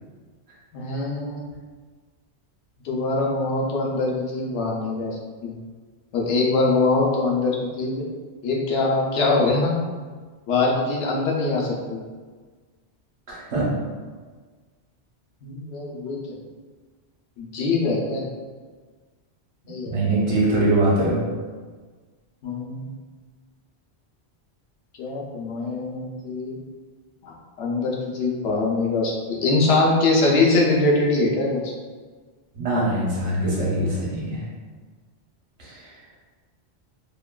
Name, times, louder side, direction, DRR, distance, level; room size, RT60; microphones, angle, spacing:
voice 1, 0.7-1.5 2.8-5.6 6.1-8.0 8.4-9.7 10.5-12.0 15.4-16.2 17.4-18.3 19.7-19.9 22.4-22.9 25.0-26.6 27.2-31.7, left 3 dB, 80° left, -2 dB, 0.9 m, -23 dB
voice 2, 13.3-13.7 19.9-21.2 32.5-34.4 35.6-35.9, right 1 dB, 65° right, -6 dB, 1.1 m, -22 dB
2.9 x 2.2 x 2.2 m, 1.5 s
omnidirectional pair, 1.1 m